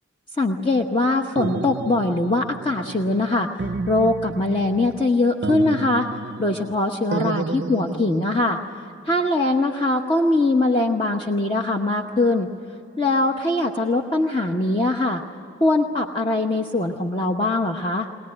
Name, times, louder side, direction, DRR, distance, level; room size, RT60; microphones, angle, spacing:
voice 1, 0.4-6.1 6.4-8.6 9.0-12.5 13.0-15.2 15.6-18.1, left 2 dB, 25° left, 2 dB, 0.9 m, -22 dB
sound 1, 1.3-3.3 3.6-5.1 5.4-6.8 7.1-8.5, right 3 dB, 55° right, 0.5 m, -31 dB
23.0 x 19.0 x 9.6 m, 3.0 s
head